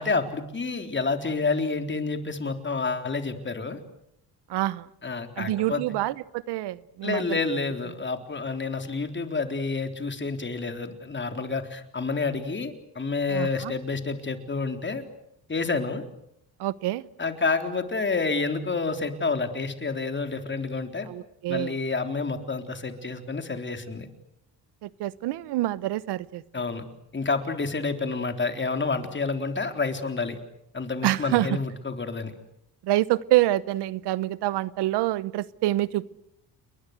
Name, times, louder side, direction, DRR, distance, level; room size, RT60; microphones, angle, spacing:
voice 1, 0.0-3.8 5.0-5.8 7.0-15.0 15.5-16.0 17.2-21.1 21.5-24.1 26.5-26.9 27.1-30.4 30.7-32.3, left 4 dB, 30° left, 6 dB, 3.8 m, -29 dB
voice 2, 4.5-4.9 5.4-7.4 13.3-13.7 16.6-17.1 21.1-21.8 24.8-26.4 31.0-31.6 32.8-36.1, right 16 dB, 90° right, 19 dB, 1.0 m, -26 dB
29.5 x 22.0 x 8.1 m, 0.77 s
cardioid pair, 80°, 39 cm